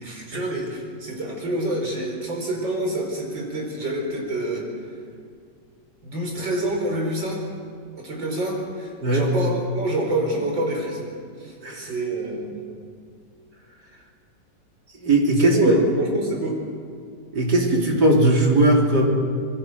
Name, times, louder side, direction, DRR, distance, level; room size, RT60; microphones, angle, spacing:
voice 1, 0.0-4.7 6.0-7.4 8.0-11.1 11.4-12.6 15.4-16.6, right 1 dB, 85° right, 0 dB, 5.5 m, -27 dB
voice 2, 15.0-15.7 17.3-19.1, right 1 dB, 60° right, -1 dB, 3.9 m, -19 dB
26.5 x 21.5 x 6.5 m, 2.2 s
omnidirectional pair, 2.0 m